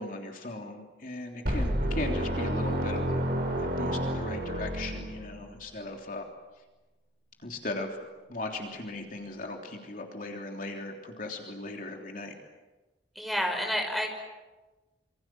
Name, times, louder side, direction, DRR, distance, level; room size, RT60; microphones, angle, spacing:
voice 1, 0.0-3.2 3.6-6.3 7.4-8.0 8.3-12.3, left 2 dB, 50° left, 2 dB, 3.3 m, -38 dB
sound 1, 1.5-5.5, equal, 60° right, 6.8 m, -30 dB
voice 2, 13.2-14.1, equal, ahead, 1 dB, 5.8 m, -29 dB
27.5 x 25.5 x 7.7 m, 1.2 s
head